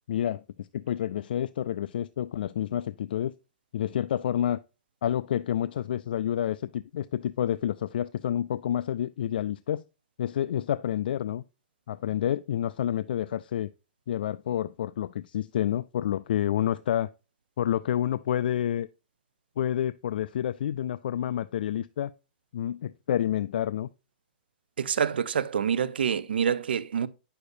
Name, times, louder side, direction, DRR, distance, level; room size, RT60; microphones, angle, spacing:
voice 1, 0.1-3.3 3.7-4.6 5.0-9.8 10.2-11.4 11.9-13.7 14.1-17.1 17.6-18.9 19.6-22.1 22.5-23.9, left 10 dB, 70° left, 0.3 m, -29 dB
voice 2, 24.8-27.1, right 7 dB, 90° right, 0.6 m, -26 dB
9.3 x 6.7 x 2.7 m
hypercardioid pair, 150°, 5 cm